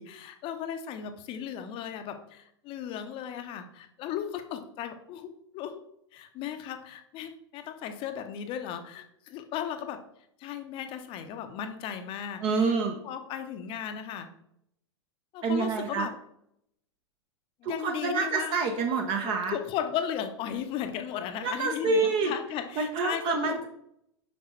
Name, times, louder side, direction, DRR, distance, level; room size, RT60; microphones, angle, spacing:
voice 1, 0.0-5.8 6.1-10.0 10.4-12.8 13.0-14.3 15.3-16.1 17.6-18.5 19.3-23.6, left 9 dB, 35° left, 8 dB, 0.7 m, -36 dB
voice 2, 12.4-13.0 15.4-16.1 17.6-19.5 21.4-22.3 22.8-23.7, right 4 dB, 35° right, 4 dB, 0.8 m, -27 dB
5.9 x 5.4 x 3.2 m, 0.75 s
figure-of-eight pair, 90°, 15 cm